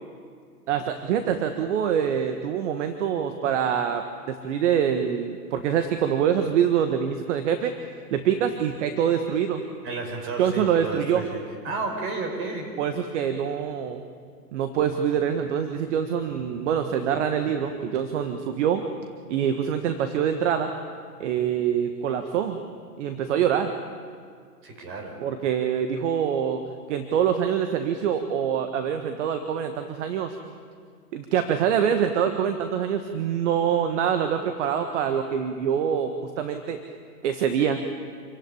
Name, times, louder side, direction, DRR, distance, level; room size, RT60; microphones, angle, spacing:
voice 1, 0.7-7.7 8.1-9.6 10.4-11.3 12.8-14.0 14.5-18.8 19.3-20.7 21.2-22.6 23.0-23.7 25.2-26.6 26.9-30.4 31.1-36.8 37.2-37.8, right 8 dB, 45° right, 7 dB, 1.6 m, -25 dB
voice 2, 9.8-12.7 24.6-25.2, right 3 dB, 25° right, 3 dB, 5.1 m, -32 dB
28.0 x 16.0 x 10.0 m, 2.1 s
hypercardioid pair, 135°, 48 cm